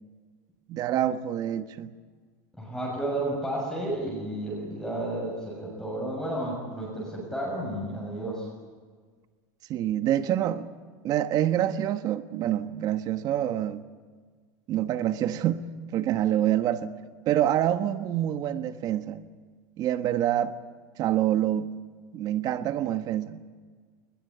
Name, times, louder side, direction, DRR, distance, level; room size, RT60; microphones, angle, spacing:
voice 1, 0.7-1.9 9.7-10.7 11.0-13.8 14.7-16.9 17.2-19.2 19.8-20.5 21.0-21.7 22.1-23.5, right 11 dB, 40° right, 1.4 m, -26 dB
voice 2, 2.6-8.5, right 1 dB, 5° left, 6.9 m, -32 dB
21.0 x 20.5 x 9.8 m
supercardioid pair, 140°, 10 cm